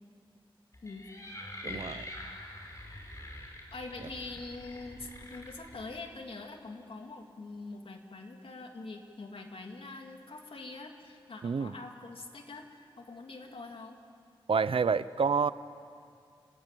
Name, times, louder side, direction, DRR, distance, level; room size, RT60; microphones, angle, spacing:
sound 1, 0.7-5.9, left 1 dB, 35° left, 5.7 m, -45 dB
voice 1, 1.6-1.9 11.4-11.7 14.5-15.5, right 5 dB, 80° right, 15 dB, 0.7 m, -28 dB
voice 2, 3.7-14.0, left 3 dB, 80° left, 3 dB, 2.8 m, -44 dB
30.0 x 20.0 x 9.2 m, 2.4 s
wide cardioid pair, 75°, 9 cm